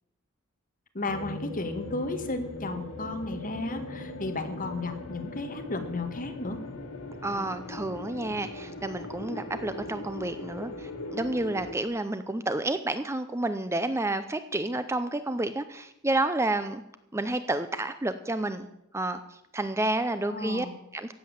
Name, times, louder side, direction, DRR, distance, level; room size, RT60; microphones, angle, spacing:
voice 1, 0.9-6.6 20.3-20.7, left 2 dB, 40° left, 6 dB, 1.8 m, -33 dB
sound 1, 1.1-11.8, left 2 dB, 90° left, 2.1 m, -40 dB
voice 2, 7.2-16.8 17.1-18.7 18.9-20.7 20.9-21.1, right 2 dB, 15° right, 11 dB, 0.6 m, -30 dB
15.0 x 9.5 x 7.2 m, 0.82 s
head